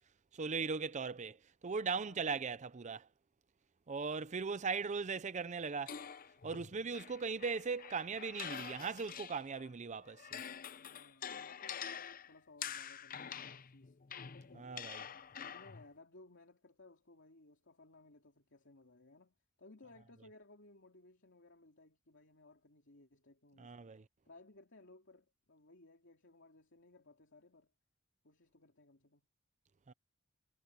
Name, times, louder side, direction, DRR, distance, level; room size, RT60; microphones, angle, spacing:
voice 1, 0.3-1.4 1.6-3.1 3.9-6.0 6.4-10.4 14.5-15.1 23.6-24.0 29.9-30.0, right 5 dB, 35° right, 0.6 m, -39 dB
voice 2, 2.0-2.4 10.7-14.0 15.3-23.8 24.2-27.7 28.2-29.2, left 2 dB, 65° left, 3.1 m, -61 dB
sound 1, 5.9-9.7 10.0-15.9, left 8 dB, 45° left, 0.7 m, -47 dB
head